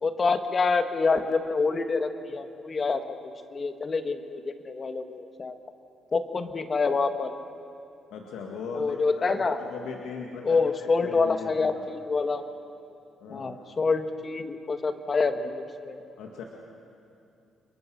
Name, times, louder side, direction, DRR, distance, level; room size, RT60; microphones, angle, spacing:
voice 1, 0.0-5.6 6.1-7.3 8.7-9.6 10.4-12.4 13.3-16.0, left 4 dB, 35° left, 7 dB, 1.7 m, -27 dB
voice 2, 8.1-9.0 9.4-11.9 13.2-13.5 16.2-16.4, left 5 dB, 85° left, 0 dB, 2.1 m, -39 dB
29.5 x 22.5 x 6.4 m, 2.6 s
cardioid pair, 90°, 0 cm